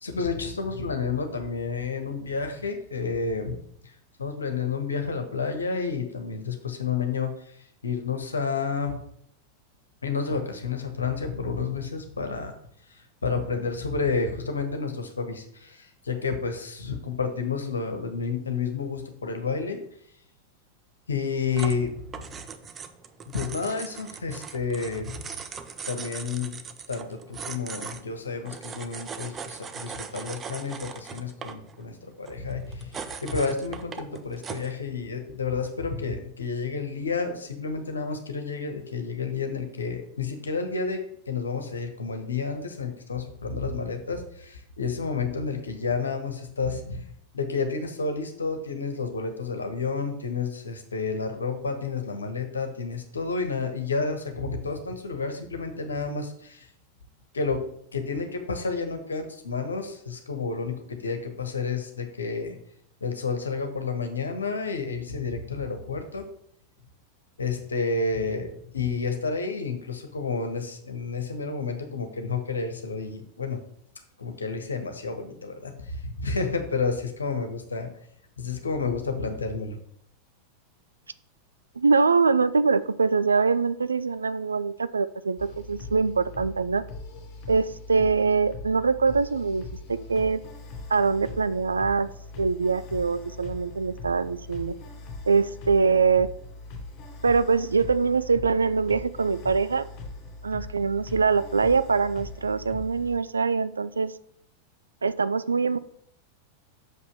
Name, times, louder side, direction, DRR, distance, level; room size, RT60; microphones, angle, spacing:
voice 1, 0.0-3.6 4.2-9.0 10.0-12.5 12.9-19.8 21.1-22.0 23.3-25.2 25.9-26.6 26.9-32.9 33.2-41.0 41.3-47.1 47.3-56.7 57.3-57.6 57.9-62.6 63.0-66.2 67.4-73.6 74.2-77.9 78.4-79.8, left 4 dB, 75° left, 6 dB, 1.4 m, -30 dB
sound 1, 21.5-34.8, right 6 dB, 20° right, 0.7 m, -40 dB
voice 2, 81.8-86.8 87.5-89.6 89.9-90.4 90.9-92.1 92.4-94.7 95.3-96.3 97.2-99.9 100.4-104.1 105.0-105.8, right 4 dB, 75° right, 14 dB, 0.4 m, -23 dB
sound 2, 85.4-103.2, left 2 dB, 40° left, 3.4 m, -41 dB
6.5 x 5.6 x 6.7 m, 0.69 s
figure-of-eight pair, 90°, 0 cm